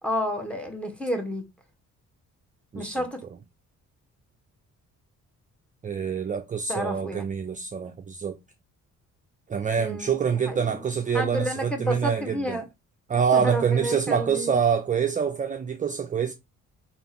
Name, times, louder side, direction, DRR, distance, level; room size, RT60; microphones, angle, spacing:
voice 1, 0.0-1.5 2.7-3.2 6.7-7.2 9.7-10.1 10.5-10.8 11.1-12.6 13.3-14.6, equal, 5° left, 1.0 m, -30 dB
voice 2, 5.8-8.4 9.5-12.6 13.1-16.3, right 7 dB, 25° right, 0.4 m, -26 dB
3.5 x 2.5 x 4.2 m
cardioid pair, 90°, 30 cm